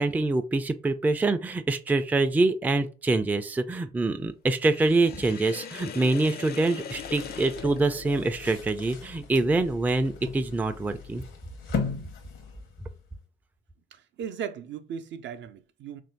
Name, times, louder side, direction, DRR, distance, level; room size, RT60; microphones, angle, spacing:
voice 1, 0.0-11.2, right 2 dB, 10° right, 0.3 m, -25 dB
Sink (filling or washing), 4.7-8.6, left 7 dB, 50° left, 0.4 m, -40 dB
sound 1, 6.9-13.1, left 5 dB, 80° left, 0.9 m, -38 dB
voice 2, 13.9-16.0, right 8 dB, 65° right, 0.5 m, -37 dB
3.1 x 2.6 x 4.3 m
cardioid pair, 90°, 20 cm